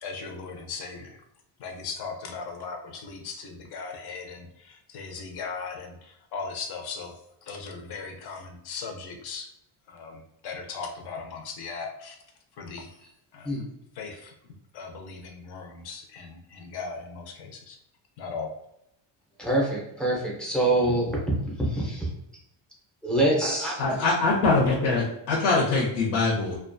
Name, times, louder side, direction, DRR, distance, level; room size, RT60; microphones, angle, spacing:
voice 1, 0.0-1.2 1.6-7.1 7.4-9.5 9.9-12.2 12.6-12.9 13.3-13.5 14.0-14.3 14.7-17.8 18.2-18.5, left 4 dB, 55° left, 2 dB, 0.6 m, -38 dB
voice 2, 19.4-22.1 23.0-23.9, right 1 dB, ahead, -4 dB, 0.5 m, -25 dB
voice 3, 23.8-26.6, left 3 dB, 80° left, -3 dB, 0.8 m, -23 dB
2.4 x 2.3 x 2.5 m, 0.78 s
cardioid pair, 150°, 48 cm